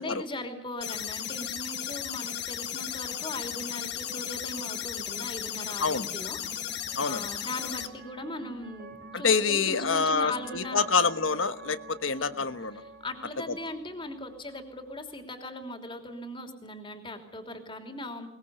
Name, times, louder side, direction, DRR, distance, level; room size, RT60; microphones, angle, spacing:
voice 1, 0.0-10.8 13.0-18.3, left 1 dB, 25° left, 5 dB, 3.2 m, -39 dB
sound 1, 0.8-7.9, left 10 dB, 55° left, 1.5 m, -35 dB
sound 2, 5.0-15.2, right 3 dB, 50° right, 2.5 m, -49 dB
voice 2, 9.1-12.8, left 5 dB, 75° left, 12 dB, 1.2 m, -26 dB
22.0 x 21.0 x 8.2 m, 0.79 s
head